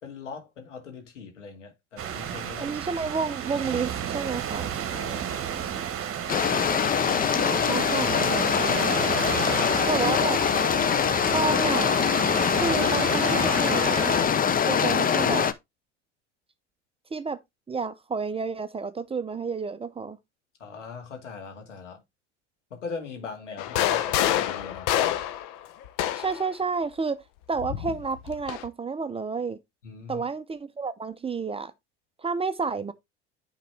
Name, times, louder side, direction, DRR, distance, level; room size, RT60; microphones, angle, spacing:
voice 1, 0.0-2.8 4.9-5.9 14.6-14.8 20.6-22.0 22.7-24.9 29.8-30.3, left 5 dB, 90° left, 2.3 m, -41 dB
sound 1, 2.0-14.3, right 9 dB, 40° right, 1.3 m, -33 dB
voice 2, 2.6-4.7 7.3-9.0 9.9-10.4 11.3-12.0 12.6-14.2 14.6-15.5 17.1-17.4 17.7-20.2 23.7-23.8 26.1-27.2 27.5-29.6 30.1-31.7 32.2-32.9, right 4 dB, 15° right, 0.7 m, -30 dB
sound 2, 6.3-15.5, left 7 dB, 25° left, 0.7 m, -23 dB
sound 3, 23.6-26.5 27.6-28.7, left 11 dB, 60° left, 1.0 m, -27 dB
9.4 x 4.1 x 3.4 m
hypercardioid pair, 80°, 36 cm